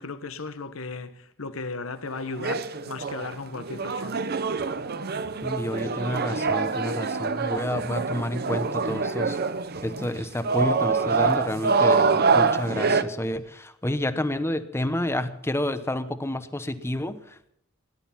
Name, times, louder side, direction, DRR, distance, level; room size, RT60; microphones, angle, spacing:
voice 1, 0.0-4.3, left 3 dB, 80° left, 1.2 m, -36 dB
sound 1, 2.1-13.0, right 4 dB, 50° right, 0.7 m, -25 dB
voice 2, 5.4-9.4 9.8-17.5, left 1 dB, 10° left, 0.9 m, -29 dB
17.5 x 11.5 x 5.8 m
head